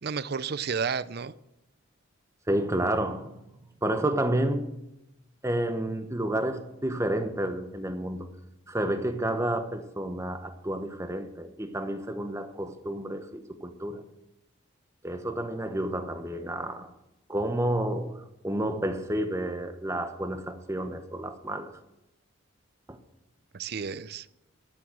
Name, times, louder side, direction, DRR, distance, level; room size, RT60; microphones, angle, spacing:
voice 1, 0.0-1.3 23.5-24.3, right 6 dB, 50° right, 0.5 m, -31 dB
voice 2, 2.5-3.4 3.8-4.7 5.4-8.3 8.7-14.0 15.0-16.9 17.3-18.1 18.4-21.7 22.9-23.0, right 1 dB, 15° right, 1.1 m, -30 dB
14.0 x 7.8 x 7.6 m
head